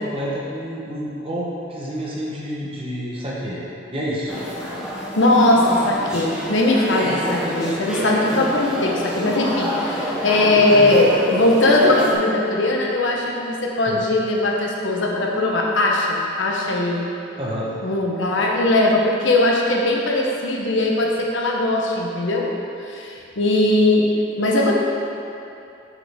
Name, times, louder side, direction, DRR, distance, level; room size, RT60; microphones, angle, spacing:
voice 1, 0.0-3.6 3.9-4.3 10.6-11.0 13.9-14.0 17.3-17.7, equal, 30° right, -5 dB, 1.1 m, -29 dB
sound 1, 4.3-12.1, equal, 5° right, 0.8 m, -27 dB
voice 2, 5.0-17.0 17.8-22.5 22.9-24.1 24.4-24.7, left 2 dB, 75° left, -1 dB, 1.0 m, -19 dB
7.4 x 6.4 x 3.6 m, 2.7 s
head